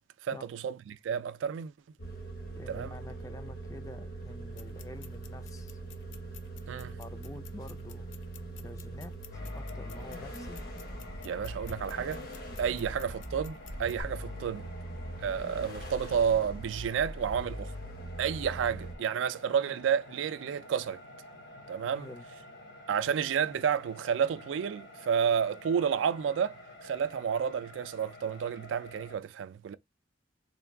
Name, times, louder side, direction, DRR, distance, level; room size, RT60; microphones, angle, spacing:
voice 1, 0.2-1.7 2.7-2.9 6.7-7.0 11.2-12.2 12.6-14.7 15.2-17.7 18.2-21.0 21.7-22.1 22.9-29.7, right 7 dB, 85° right, 0.3 m, -31 dB
sound 1, 2.0-18.9, right 1 dB, 50° left, 0.9 m, -42 dB
voice 2, 2.6-5.8 7.0-8.1 8.6-10.6 12.7-12.9 22.0-22.2, left 2 dB, 15° left, 0.3 m, -48 dB
sound 2, 4.5-14.0, left 8 dB, 85° left, 0.5 m, -54 dB
sound 3, 9.3-29.2, left 1 dB, 70° left, 1.4 m, -49 dB
3.7 x 2.3 x 3.4 m
head